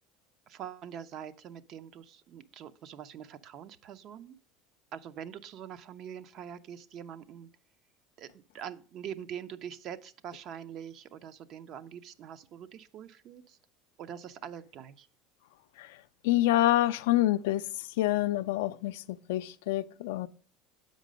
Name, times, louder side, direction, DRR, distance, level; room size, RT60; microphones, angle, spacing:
voice 1, 0.5-4.4 4.9-7.5 8.2-13.6 14.0-15.1, right 9 dB, 50° right, 0.6 m, -44 dB
voice 2, 15.8-20.3, left 15 dB, 85° left, 0.4 m, -27 dB
7.4 x 5.2 x 5.0 m
supercardioid pair, 115°, 0 cm